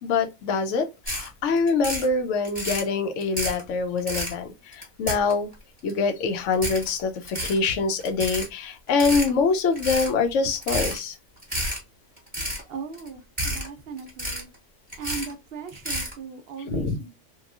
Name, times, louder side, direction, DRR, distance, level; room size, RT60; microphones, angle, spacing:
voice 1, 0.0-5.5 5.8-11.2 16.7-17.0, left 4 dB, 80° left, 0.9 m, -25 dB
sound 1, 1.1-1.3 1.6-2.1 2.4-2.9 3.2-3.6 4.0-4.3 4.7-5.5 5.9-6.0 6.5-6.9 7.2-7.6 8.0-8.5 8.9-9.3 9.8-10.1 10.5-11.0 11.4-11.8 12.2-12.6 12.9-13.1 13.4-13.7 14.0-14.6 14.9-15.3 15.7-16.1, equal, 5° right, 1.0 m, -30 dB
voice 2, 12.7-14.5 15.0-17.1, right 5 dB, 65° right, 0.7 m, -38 dB
2.8 x 2.3 x 2.4 m
omnidirectional pair, 1.3 m